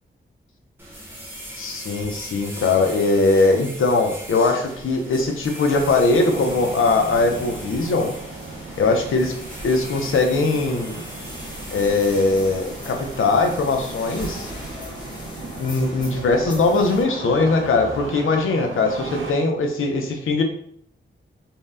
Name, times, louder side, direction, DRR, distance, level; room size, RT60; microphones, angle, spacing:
sound 1, 0.8-16.8, equal, 10° right, 0.7 m, -40 dB
voice 1, 1.6-8.1 8.8-9.3 9.6-11.0 11.7-14.5 15.6-20.4, left 3 dB, 90° left, 3 dB, 0.6 m, -20 dB
sound 2, 4.5-17.0, equal, 20° left, 0.8 m, -40 dB
Engine starting, 6.1-19.3, right 3 dB, 75° right, 0.6 m, -37 dB
2.7 x 2.1 x 3.4 m, 0.66 s
wide cardioid pair, 170°, 20 cm